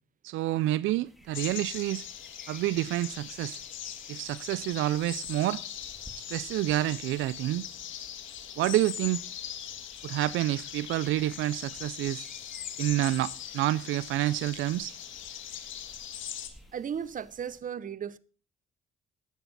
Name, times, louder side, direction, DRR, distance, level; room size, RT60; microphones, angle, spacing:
voice 1, 0.2-2.1 2.5-3.6 4.1-5.6 6.2-7.7 8.6-9.2 10.0-12.3 12.8-15.0, right 15 dB, 85° right, 0.4 m, -28 dB
sound 1, 1.0-17.6, equal, ahead, 2.2 m, -56 dB
sound 2, 1.3-16.5, left 10 dB, 75° left, 1.6 m, -41 dB
voice 2, 16.7-18.2, right 8 dB, 40° right, 0.7 m, -35 dB
13.0 x 9.2 x 4.0 m
cardioid pair, 90°, 20 cm